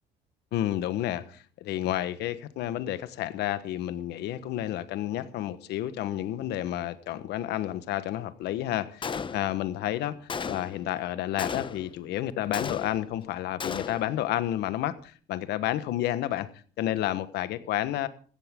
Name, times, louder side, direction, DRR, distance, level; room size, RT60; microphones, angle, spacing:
voice 1, 0.5-16.5 16.8-18.1, left 13 dB, 80° left, 1.3 m, -31 dB
Gunshot gunfire, 9.0-9.7 10.3-10.9 11.4-12.0 12.5-13.2 13.6-14.2, left 6 dB, 30° left, 0.8 m, -35 dB
16.0 x 15.5 x 3.7 m
cardioid pair, 110°, 17 cm